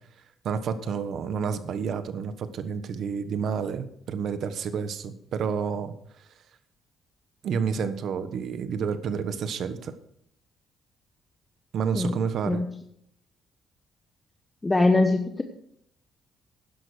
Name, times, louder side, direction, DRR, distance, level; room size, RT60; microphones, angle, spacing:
voice 1, 0.4-5.9 7.4-9.9 11.7-12.6, right 6 dB, 70° right, 11 dB, 1.3 m, -29 dB
voice 2, 14.6-15.4, left 2 dB, 20° left, 5 dB, 1.1 m, -22 dB
11.5 x 11.0 x 5.1 m, 0.71 s
cardioid pair, 90°, 0 cm